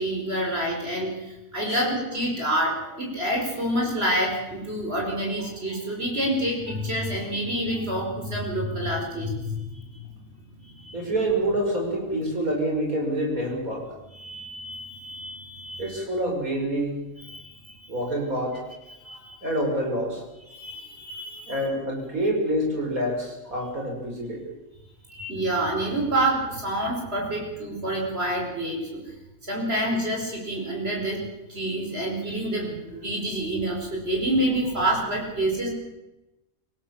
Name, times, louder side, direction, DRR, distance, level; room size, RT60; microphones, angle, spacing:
voice 1, 0.0-10.2 10.5-11.0 14.1-16.0 17.2-17.9 19.0-19.4 20.4-21.6 25.1-29.0 29.5-31.2 31.5-35.7, right 1 dB, 45° right, -1 dB, 5.3 m, -28 dB
voice 2, 10.9-13.9 15.8-17.0 17.9-18.6 19.4-20.2 21.5-24.5, right 1 dB, 80° right, 0 dB, 6.4 m, -27 dB
25.5 x 16.5 x 7.3 m, 0.99 s
omnidirectional pair, 1.5 m